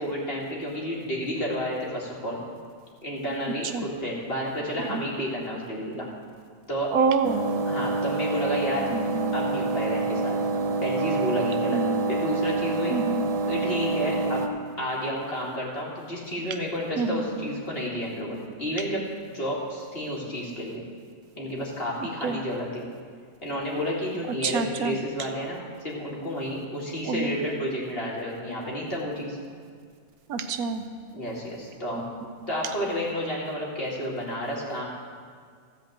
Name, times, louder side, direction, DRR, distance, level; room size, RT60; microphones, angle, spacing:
voice 1, 0.0-2.4 3.0-6.1 6.7-7.0 7.7-8.9 9.3-10.4 10.8-11.8 12.1-13.0 13.5-14.4 14.8-19.0 19.3-20.8 21.4-22.8 23.4-29.4 31.1-32.0 32.5-34.8, equal, 40° left, -4 dB, 2.4 m, -31 dB
voice 2, 6.9-7.5 8.9-9.3 11.7-12.0 12.9-13.3 17.0-17.5 22.2-22.4 24.4-25.0 27.1-27.3 30.3-30.8, right 5 dB, 85° right, 8 dB, 1.2 m, -27 dB
sound 1, 7.2-14.5, right 3 dB, 40° right, 0.6 m, -27 dB
14.5 x 5.1 x 7.8 m, 2.1 s
omnidirectional pair, 1.5 m